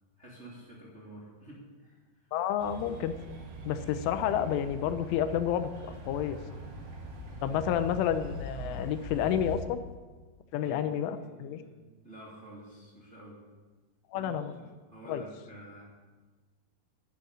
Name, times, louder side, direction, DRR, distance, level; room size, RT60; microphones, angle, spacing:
voice 1, 0.2-2.3 7.4-7.8 8.6-8.8 10.5-13.4 14.1-15.8, right 1 dB, 20° right, -4 dB, 2.3 m, -50 dB
voice 2, 2.3-3.2 3.7-6.4 7.4-9.8 10.5-11.6 14.1-14.5 15.1-15.2, left 9 dB, 85° left, 10 dB, 3.2 m, -30 dB
sound 1, 2.6-9.6, right 1 dB, 65° right, 4.8 m, -42 dB
11.0 x 10.5 x 9.8 m, 1.3 s
omnidirectional pair, 5.7 m